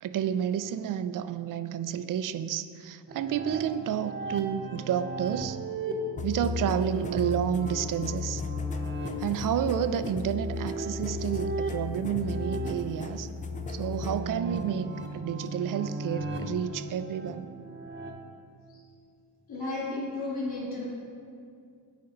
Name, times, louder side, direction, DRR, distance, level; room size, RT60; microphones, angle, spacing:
voice 1, 0.0-5.6 6.2-8.4 9.2-13.3 13.7-17.5, right 9 dB, 50° right, 12 dB, 0.4 m, -30 dB
sound 1, 3.1-18.1, right 3 dB, 25° right, 0.9 m, -37 dB
sound 2, 6.2-14.2, left 5 dB, 20° left, 0.4 m, -35 dB
voice 2, 19.5-20.8, left 2 dB, 55° left, -9 dB, 1.7 m, -33 dB
9.3 x 4.2 x 3.9 m, 2.3 s
supercardioid pair, 65°, 45 cm